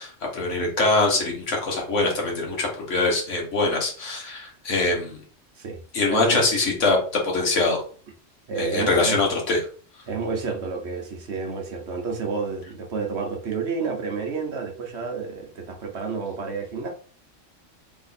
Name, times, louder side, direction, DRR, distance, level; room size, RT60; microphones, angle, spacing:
voice 1, 0.0-5.2 5.9-7.0 7.2-7.8 8.6-9.6, left 3 dB, 75° left, -1 dB, 1.6 m, -23 dB
voice 2, 8.5-9.2 10.1-16.9, right 4 dB, 60° right, 3 dB, 1.1 m, -30 dB
3.5 x 3.0 x 4.1 m, 0.42 s
omnidirectional pair, 1.3 m